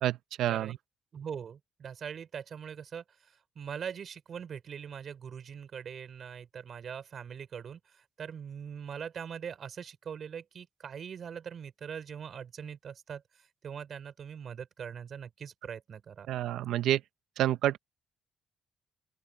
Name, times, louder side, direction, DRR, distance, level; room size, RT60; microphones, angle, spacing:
voice 1, 0.0-0.8 16.3-17.0 17.4-17.8, right 12 dB, 85° right, 0.7 m, -28 dB
voice 2, 1.1-16.3, right 7 dB, 55° right, 5.2 m, -42 dB
open air
cardioid pair, 90°, 0 cm